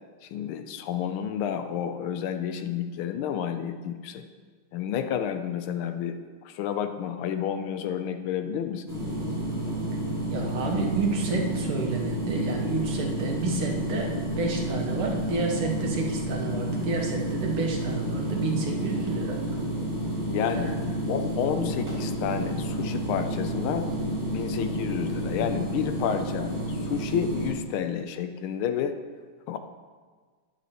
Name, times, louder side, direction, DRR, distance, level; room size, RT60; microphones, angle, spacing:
voice 1, 0.2-4.2 4.7-6.2 6.4-9.0 20.3-20.8 21.1-23.9 24.3-28.9 29.5-29.6, left 8 dB, 80° left, 8 dB, 1.4 m, -30 dB
sound 1, 8.9-27.5, right 1 dB, 10° right, 1.8 m, -30 dB
voice 2, 10.3-19.4 20.5-20.8, right 3 dB, 90° right, 0 dB, 2.0 m, -30 dB
10.0 x 8.2 x 2.9 m, 1.5 s
omnidirectional pair, 2.4 m